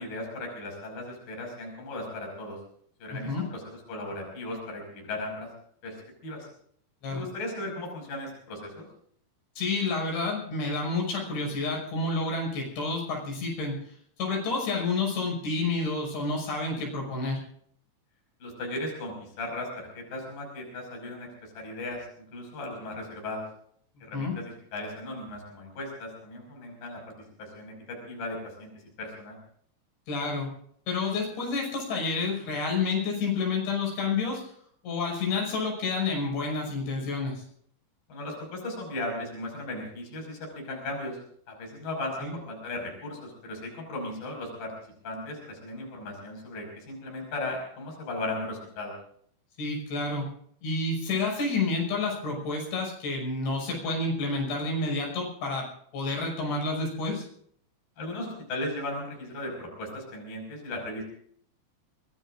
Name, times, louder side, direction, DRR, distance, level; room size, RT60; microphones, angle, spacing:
voice 1, 0.0-2.6 3.0-5.5 5.8-6.0 6.2-6.5 7.1-8.9 18.4-22.1 22.3-23.5 24.0-27.1 27.4-28.7 29.0-29.4 38.1-41.2 41.5-49.0 58.0-61.0, left 2 dB, 55° left, 1 dB, 7.3 m, -37 dB
voice 2, 9.6-13.8 14.2-17.4 24.1-24.3 30.1-30.5 30.9-34.4 34.8-37.4 42.2-42.3 49.6-50.3 50.6-55.7 55.9-57.2, left 3 dB, 85° left, 0 dB, 8.4 m, -29 dB
24.5 x 22.0 x 2.6 m, 0.63 s
omnidirectional pair, 4.9 m